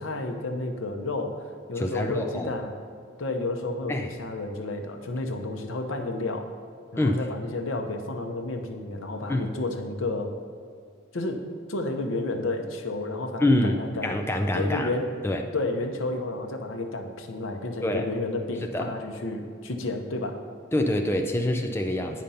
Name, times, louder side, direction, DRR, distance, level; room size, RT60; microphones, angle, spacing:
voice 1, 0.0-2.7 3.2-6.5 6.9-10.4 11.1-14.1 14.5-15.1 15.5-20.4, left 2 dB, 90° left, 5 dB, 0.8 m, -31 dB
voice 2, 1.8-2.5 3.9-4.1 7.0-7.2 9.3-9.5 13.4-14.9 15.2-15.5 17.8-18.1 18.7-18.9 20.7-22.2, left 1 dB, 10° left, 3 dB, 0.4 m, -25 dB
9.1 x 5.1 x 5.6 m, 2.2 s
head